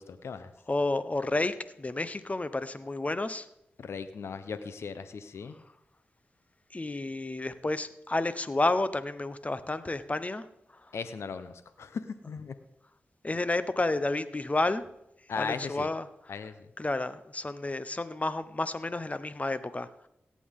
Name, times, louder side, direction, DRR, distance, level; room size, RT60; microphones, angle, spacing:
voice 1, 0.0-0.5 3.8-5.5 10.9-12.5 15.3-15.9 16.3-16.7, left 5 dB, 80° left, 11 dB, 0.8 m, -37 dB
voice 2, 0.7-3.5 6.7-10.5 13.2-14.8 15.4-16.0 16.8-20.1, left 2 dB, 30° left, 13 dB, 1.0 m, -30 dB
17.0 x 8.5 x 3.7 m, 0.81 s
cardioid pair, 45°, 5 cm